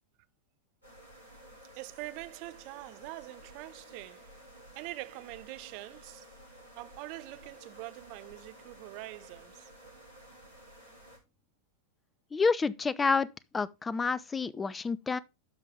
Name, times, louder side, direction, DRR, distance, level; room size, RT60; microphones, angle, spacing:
sound 1, 0.8-11.2, right 1 dB, 90° right, 4.6 m, -53 dB
voice 1, 1.7-4.3 4.7-6.3 6.8-9.7, right 19 dB, 45° right, 0.6 m, -44 dB
voice 2, 12.3-13.3 13.5-15.2, left 4 dB, 15° left, 0.5 m, -28 dB
12.0 x 5.2 x 3.5 m
figure-of-eight pair, 90°, 0 cm